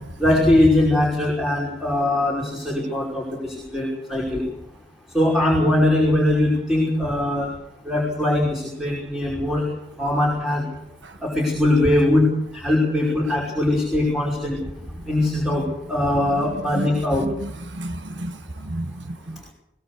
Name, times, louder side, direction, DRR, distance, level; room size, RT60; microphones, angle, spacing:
voice 1, 0.2-4.4 5.1-7.5 7.9-9.6 10.0-10.7 11.2-12.3 12.5-14.6 15.1-17.3, left 1 dB, ahead, -3 dB, 5.5 m, -21 dB
voice 2, 17.2-19.5, right 1 dB, 70° right, 10 dB, 1.3 m, -32 dB
23.0 x 19.5 x 6.5 m, 0.77 s
head